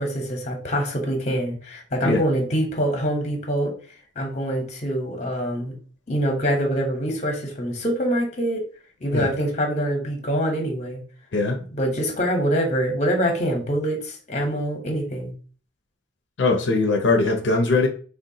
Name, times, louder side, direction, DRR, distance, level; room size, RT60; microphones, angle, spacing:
voice 1, 0.0-3.7 4.2-5.7 6.1-8.6 9.0-11.0 11.7-15.3, equal, 40° left, 0.8 m, -25 dB
voice 2, 16.4-17.9, left 3 dB, 85° left, 0.5 m, -21 dB
3.8 x 2.2 x 2.6 m
head